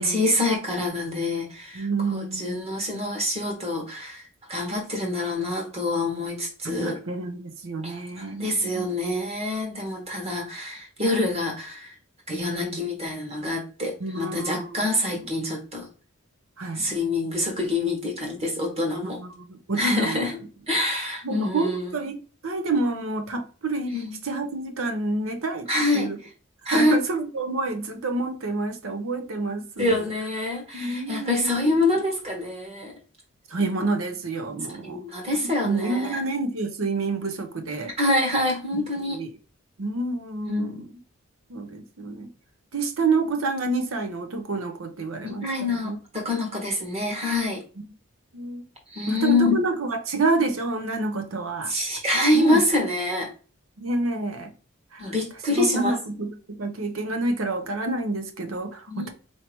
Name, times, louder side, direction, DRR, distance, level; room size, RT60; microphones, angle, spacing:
voice 1, 0.0-4.2 4.5-7.0 7.8-11.9 12.3-15.8 16.7-19.2 19.8-20.3 20.7-21.9 23.9-24.2 25.7-26.1 26.6-27.0 29.8-32.9 34.8-36.2 38.0-39.2 40.4-40.8 45.2-47.6 48.9-49.6 51.7-53.3 55.0-56.0 58.9-59.1, left 2 dB, 30° right, 1.2 m, -26 dB
voice 2, 1.7-3.0 6.6-8.9 12.3-12.8 14.0-15.2 16.6-16.9 19.0-20.3 21.2-23.9 24.2-25.7 25.9-26.2 26.6-30.0 30.7-31.8 33.5-35.0 35.6-37.9 39.0-39.3 39.8-40.9 41.5-42.3 42.7-46.0 48.3-48.6 49.1-51.7 52.3-52.6 53.8-54.5 54.9-55.1 55.5-59.1, right 3 dB, 70° right, 0.7 m, -28 dB
4.4 x 2.8 x 3.0 m
head